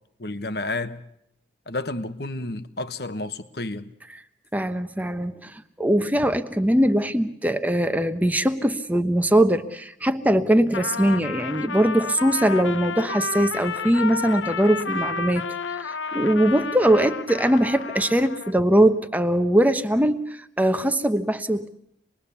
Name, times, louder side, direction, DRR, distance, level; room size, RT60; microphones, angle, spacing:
voice 1, 0.2-1.0 1.7-3.9, left 2 dB, 55° left, 1.1 m, -31 dB
voice 2, 4.5-21.7, right 1 dB, 10° right, 1.0 m, -21 dB
Trumpet, 10.7-18.6, left 4 dB, 90° left, 0.9 m, -31 dB
26.5 x 21.5 x 7.0 m
head